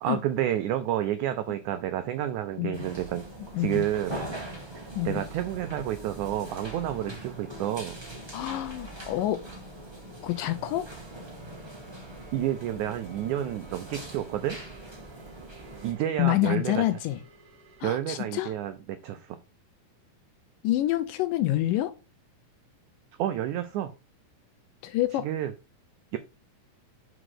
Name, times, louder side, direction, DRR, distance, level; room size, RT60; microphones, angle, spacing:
voice 1, 0.0-3.3 3.6-4.1 4.8-8.0 12.3-14.6 15.8-16.8 17.8-19.4 23.2-23.9 25.2-25.5 26.1-26.2, right 12 dB, 85° right, 1.7 m, -30 dB
sound 1, 2.7-15.9, right 1 dB, 20° right, 0.6 m, -42 dB
voice 2, 3.5-3.9 4.9-5.2 8.3-9.4 10.2-10.9 16.2-17.2 17.8-18.5 20.6-21.9 24.8-25.3, left 15 dB, 80° left, 2.1 m, -27 dB
sound 2, 10.6-17.9, right 5 dB, 35° right, 1.5 m, -55 dB
5.1 x 4.9 x 6.3 m
omnidirectional pair, 4.2 m